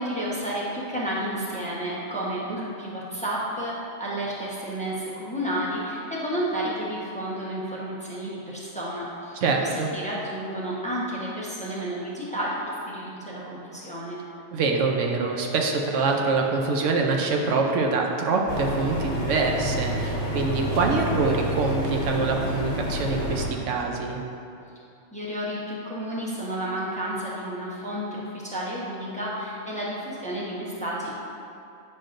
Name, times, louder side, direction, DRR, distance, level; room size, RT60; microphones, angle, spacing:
voice 1, 0.0-3.7 4.0-12.5 12.9-14.2 25.1-31.1, right 1 dB, 5° left, -7 dB, 0.9 m, -31 dB
voice 2, 9.4-9.9 14.5-24.2, right 4 dB, 75° right, 1 dB, 1.0 m, -25 dB
sound 1, 18.5-23.5, equal, 75° left, 1.4 m, -29 dB
8.7 x 5.7 x 2.5 m, 2.7 s
omnidirectional pair, 1.3 m